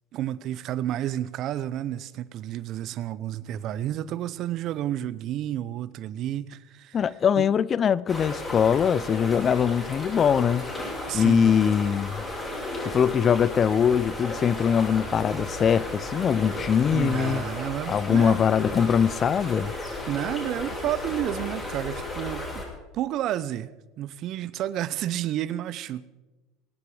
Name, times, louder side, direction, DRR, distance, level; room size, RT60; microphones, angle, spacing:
voice 1, 0.1-7.0 7.4-7.5 11.1-11.5 16.6-18.4 20.1-22.6 22.9-23.7 24.0-26.1, right 12 dB, 55° right, 0.8 m, -31 dB
voice 2, 6.9-10.6 11.1-12.2 12.9-17.4 17.9-19.7, left 7 dB, 35° left, 0.5 m, -22 dB
sound 1, 8.1-22.6, left 2 dB, 20° left, 7.0 m, -34 dB
23.0 x 9.7 x 5.0 m
hypercardioid pair, 90°, 0 cm